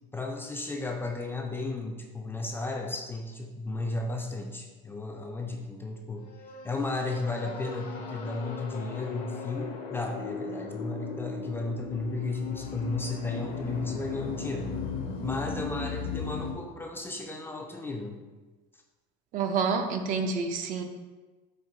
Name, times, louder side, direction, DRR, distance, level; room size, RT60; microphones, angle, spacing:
voice 1, 0.1-6.3 6.6-14.7 15.2-18.2, left 3 dB, 15° left, 2 dB, 0.4 m, -34 dB
sound 1, 6.2-16.5, left 5 dB, 60° left, 0.6 m, -37 dB
voice 2, 19.3-20.8, right 5 dB, 50° right, 5 dB, 0.5 m, -28 dB
4.4 x 2.3 x 3.8 m, 1.2 s
cardioid pair, 120°, 17 cm